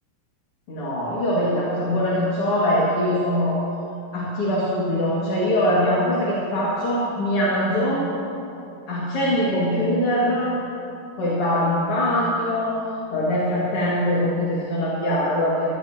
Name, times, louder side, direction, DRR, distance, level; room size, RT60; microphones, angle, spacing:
voice 1, 0.7-3.6 4.1-8.0 8.9-10.6 11.2-12.8 13.1-15.7, left 1 dB, 45° left, -7 dB, 2.7 m, -22 dB
22.0 x 15.5 x 2.9 m, 2.8 s
omnidirectional pair, 4.2 m